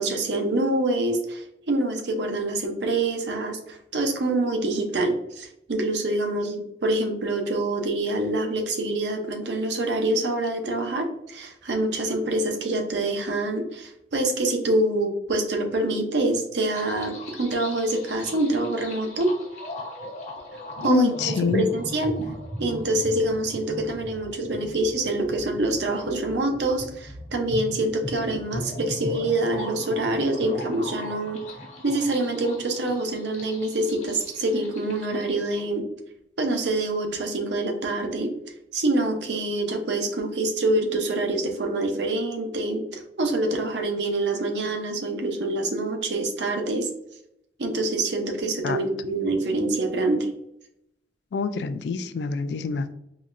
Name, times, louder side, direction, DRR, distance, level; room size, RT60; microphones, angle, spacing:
voice 1, 0.0-19.3 20.8-21.1 21.5-22.2 22.6-31.4 31.8-35.8 36.4-38.3 38.7-46.9 47.6-50.3, right 2 dB, 70° right, 4 dB, 0.7 m, -26 dB
sound 1, 16.6-35.7, left 1 dB, 40° left, 0.8 m, -39 dB
voice 2, 20.8-21.7 48.6-48.8 51.3-52.9, left 4 dB, 65° left, 11 dB, 0.3 m, -25 dB
4.0 x 3.0 x 2.5 m, 0.79 s
head